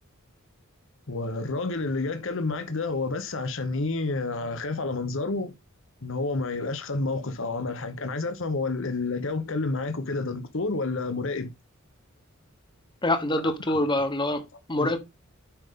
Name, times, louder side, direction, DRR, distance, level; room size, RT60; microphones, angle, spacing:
voice 1, 1.1-5.5 6.0-11.5 13.7-13.8 14.8-15.0, left 3 dB, 60° left, 1.0 m, -29 dB
voice 2, 13.0-14.4 14.7-15.0, left 1 dB, 20° left, 1.1 m, -25 dB
8.9 x 5.5 x 3.7 m
head